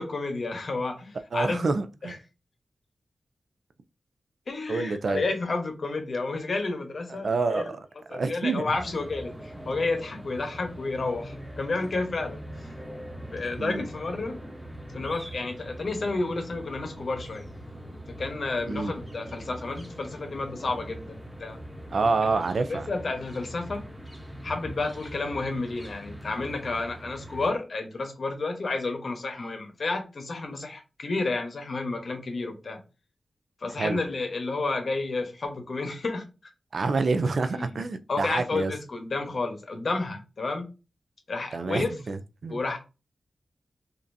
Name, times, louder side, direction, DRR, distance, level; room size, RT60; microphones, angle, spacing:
voice 1, 0.0-1.6 2.0-2.2 4.5-7.7 8.1-12.4 13.3-14.4 14.9-17.5 18.2-21.6 22.7-23.9 24.4-32.8 33.6-36.3 37.5-37.8 38.1-40.7 41.3-42.0 42.5-42.8, left 3 dB, 50° left, 1.0 m, -31 dB
voice 2, 1.3-2.2 4.7-5.2 7.1-7.9 8.1-8.6 13.6-13.8 18.7-18.9 21.9-22.9 33.8-34.0 36.7-38.7 41.5-42.6, right 3 dB, 55° right, 0.4 m, -27 dB
sound 1, 8.7-27.5, equal, 5° right, 0.9 m, -42 dB
5.2 x 2.6 x 2.6 m
wide cardioid pair, 165°, 0 cm